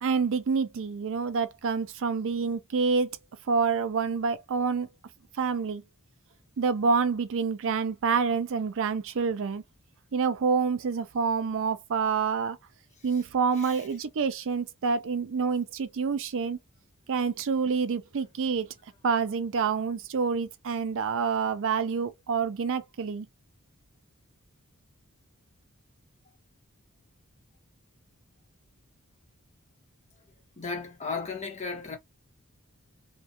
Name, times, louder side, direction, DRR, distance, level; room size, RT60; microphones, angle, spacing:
voice 1, 0.0-3.1 3.5-4.9 5.4-5.8 6.6-9.6 10.1-12.6 13.0-16.6 17.1-18.7 19.0-23.3, right 5 dB, 60° right, 0.4 m, -27 dB
voice 2, 30.6-32.0, left 4 dB, 30° left, 1.1 m, -35 dB
2.8 x 2.3 x 2.8 m
head